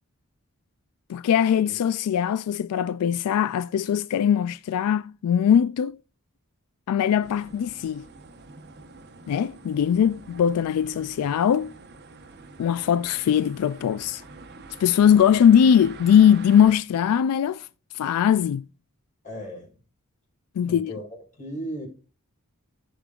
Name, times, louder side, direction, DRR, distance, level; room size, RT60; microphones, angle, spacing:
voice 1, 1.1-6.0 6.9-8.0 9.3-11.7 12.6-14.2 14.8-17.7 17.9-18.6 20.6-20.9, left 8 dB, 90° left, 0.3 m, -21 dB
sound 1, 7.2-16.7, right 3 dB, 50° right, 0.9 m, -46 dB
voice 2, 19.2-19.7 20.7-21.9, equal, 35° left, 4.1 m, -36 dB
15.5 x 5.2 x 2.4 m
head